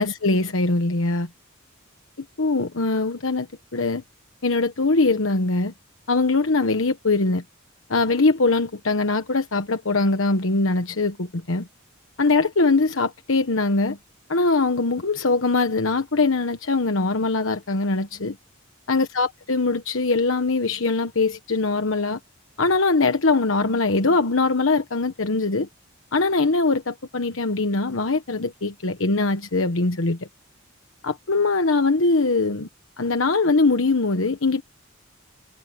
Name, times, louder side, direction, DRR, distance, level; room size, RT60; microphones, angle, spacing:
voice 1, 0.0-1.3 2.4-3.5 3.7-4.0 4.4-5.7 6.1-7.4 7.9-11.7 12.2-14.0 14.3-18.4 18.9-22.2 22.6-25.7 26.1-30.3 31.0-32.7 33.0-34.6, left 3 dB, 75° left, 1.2 m, -22 dB
head